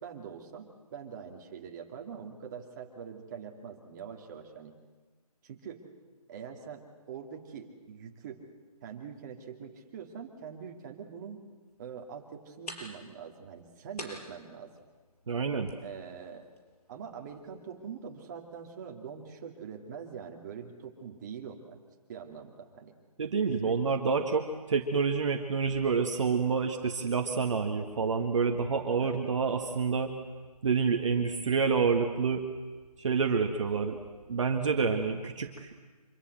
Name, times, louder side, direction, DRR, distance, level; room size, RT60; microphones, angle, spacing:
voice 1, 0.0-4.7 5.4-5.8 6.3-8.4 8.8-11.4 11.8-14.7 15.8-16.4 16.9-21.8 22.1-22.9 23.5-23.8 24.2-24.3 29.0-29.4, right 7 dB, 30° right, 2 dB, 2.5 m, -44 dB
sound 1, 11.7-18.7, left 1 dB, 75° left, 5.8 m, -50 dB
voice 2, 15.3-15.7 23.2-30.1 30.6-32.4 33.0-34.0 34.3-35.7, right 5 dB, 50° right, 4 dB, 1.7 m, -28 dB
25.5 x 24.5 x 7.8 m, 1.3 s
figure-of-eight pair, 155°, 20 cm